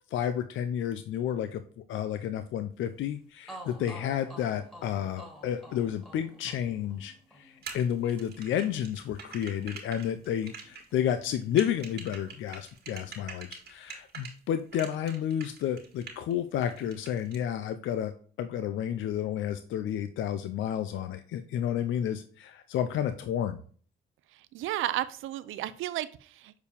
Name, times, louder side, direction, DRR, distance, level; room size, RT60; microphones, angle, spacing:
voice 1, 0.1-18.1 18.4-23.6, left 10 dB, 75° left, 10 dB, 0.6 m, -31 dB
sound 1, 3.1-3.2 3.5-11.3 11.6-12.8, right 1 dB, ahead, 2.5 m, -51 dB
sound 2, 7.6-14.3 14.7-16.3 16.6-17.4, right 5 dB, 55° right, 2.1 m, -44 dB
voice 2, 24.5-26.5, right 14 dB, 85° right, 15 dB, 0.6 m, -33 dB
6.8 x 4.7 x 3.4 m, 0.43 s
cardioid pair, 90°, 20 cm